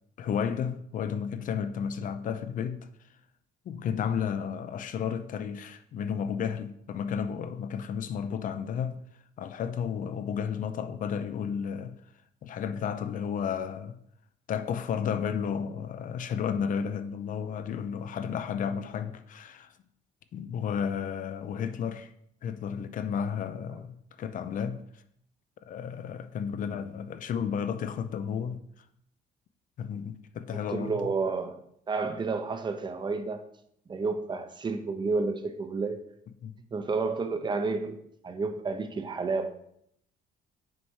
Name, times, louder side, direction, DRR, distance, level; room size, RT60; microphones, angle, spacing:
voice 1, 0.2-2.9 3.6-9.0 9.4-12.0 12.4-14.0 14.5-19.8 20.3-22.1 22.4-24.8 25.6-28.6 29.8-31.1 36.4-36.6, left 7 dB, 50° left, 0.6 m, -32 dB
voice 2, 30.5-31.6 31.9-33.4 33.9-36.0 36.7-38.0 38.2-39.6, right 4 dB, 25° right, 0.8 m, -30 dB
6.3 x 4.2 x 4.7 m
cardioid pair, 110°, 17 cm